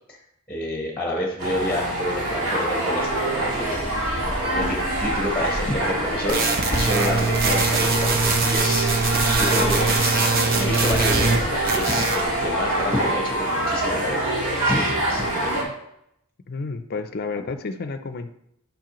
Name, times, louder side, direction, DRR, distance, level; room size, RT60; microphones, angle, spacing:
voice 1, 0.5-3.9 4.5-6.4 6.7-8.9 9.4-15.7, left 1 dB, 5° left, 0 dB, 0.9 m, -29 dB
sound 1, 1.4-15.6, right 1 dB, 85° right, 1.6 m, -25 dB
sound 2, 3.0-13.1, equal, 65° right, 1.4 m, -35 dB
sound 3, 6.3-11.4 11.7-12.2, right 3 dB, 40° right, 0.8 m, -22 dB
voice 2, 16.5-18.3, left 4 dB, 45° left, 9 dB, 0.4 m, -31 dB
7.4 x 5.3 x 3.0 m, 0.77 s
head